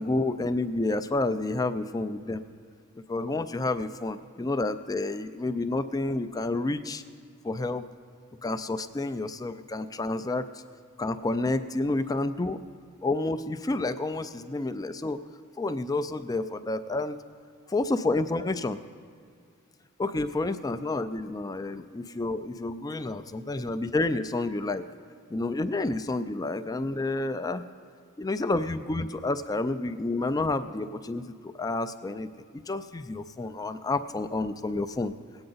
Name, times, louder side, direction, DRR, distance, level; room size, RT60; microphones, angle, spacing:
voice 1, 0.0-2.4 3.1-7.0 7.4-7.9 8.4-10.5 11.0-12.6 13.0-15.2 15.6-17.2 17.7-18.8 20.0-24.9 25.3-27.6 28.2-32.3 32.5-35.1, left 2 dB, 15° left, 11 dB, 0.3 m, -29 dB
19.0 x 8.8 x 4.0 m, 2.3 s
head